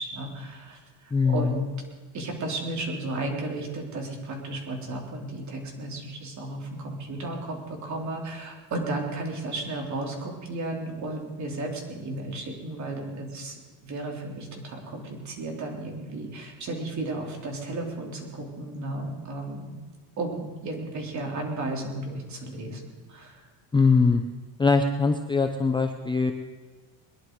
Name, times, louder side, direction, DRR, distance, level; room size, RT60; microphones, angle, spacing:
voice 1, 0.0-1.7 2.1-13.6 13.8-19.8 20.2-22.8 23.1-23.5, right 2 dB, 40° right, 0 dB, 3.6 m, -34 dB
voice 2, 1.1-1.6 23.7-24.2 24.6-26.3, left 4 dB, 10° left, 5 dB, 0.6 m, -22 dB
22.0 x 11.0 x 4.8 m, 1.4 s
cardioid pair, 140°, 44 cm